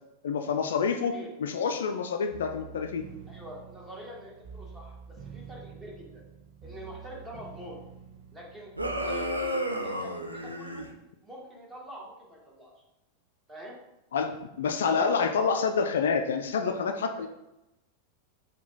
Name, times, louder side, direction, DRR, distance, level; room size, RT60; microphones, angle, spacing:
voice 1, 0.2-3.0 14.1-17.3, left 5 dB, 60° left, 6 dB, 0.3 m, -28 dB
sound 1, 2.3-9.5, right 6 dB, 40° right, 0.8 m, -47 dB
voice 2, 3.3-6.2 6.6-7.8 8.3-8.7 9.0-10.8 11.2-12.7 13.5-13.8 17.2-17.3, equal, 10° right, -2 dB, 1.2 m, -45 dB
sound 2, 8.8-10.9, equal, 85° right, 0.5 m, -32 dB
4.8 x 2.3 x 3.8 m, 0.93 s
figure-of-eight pair, 90°, 0 cm